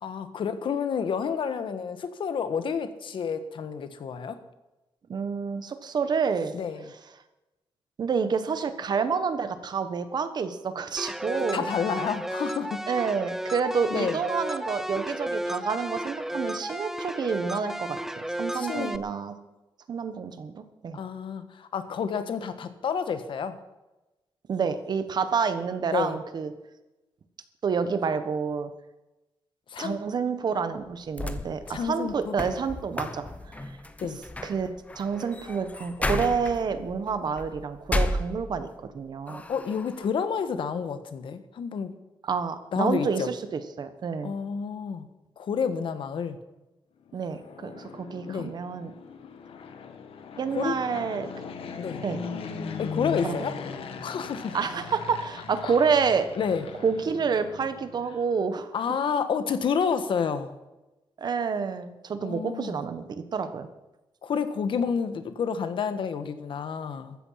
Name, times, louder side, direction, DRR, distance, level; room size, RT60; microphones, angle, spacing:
voice 1, 0.0-4.4 6.5-6.9 11.3-12.8 13.9-14.2 18.5-18.9 20.9-23.6 25.9-26.2 29.7-30.0 31.7-32.3 34.0-34.2 39.5-41.9 42.7-43.3 44.2-45.1 45.4-46.4 48.3-48.5 50.4-50.8 51.8-52.0 52.8-53.6 54.0-54.6 55.6-55.8 56.3-56.6 58.7-60.6 62.2-62.8 64.2-67.2, left 6 dB, 65° left, 10 dB, 1.5 m, -29 dB
voice 2, 5.1-6.5 8.0-11.7 12.9-18.0 18.3-19.3 19.9-21.0 24.5-26.5 27.6-28.7 29.8-33.3 34.4-38.7 38.9-39.4 42.2-44.3 47.1-48.9 50.4-51.3 52.0-52.2 53.2-53.3 54.5-56.3 56.8-58.7 61.2-63.0 63.3-63.7, right 5 dB, 50° right, 10 dB, 1.4 m, -28 dB
sound 1, 11.0-19.0, right 1 dB, 5° right, 0.6 m, -33 dB
sound 2, 30.9-38.9 39.3-40.1, left 1 dB, 15° left, 1.0 m, -33 dB
Fixed-wing aircraft airplane, 47.1-58.2, left 5 dB, 90° left, 1.7 m, -39 dB
15.0 x 13.5 x 5.8 m, 1.0 s
wide cardioid pair, 170°, 9 cm